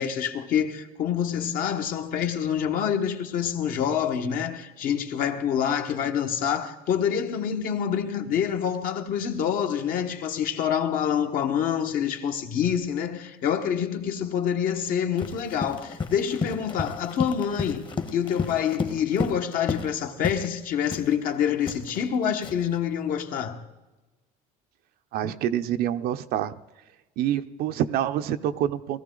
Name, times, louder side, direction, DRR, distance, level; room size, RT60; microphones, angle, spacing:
voice 1, 0.0-23.6, left 8 dB, 55° left, 1.3 m, -27 dB
Run, 15.2-20.0 20.2-20.5 20.9-22.8, left 4 dB, 30° left, 1.1 m, -32 dB
voice 2, 25.1-26.5 27.2-29.0, right 11 dB, 65° right, 0.7 m, -27 dB
19.0 x 14.0 x 3.9 m
cardioid pair, 135°, 17 cm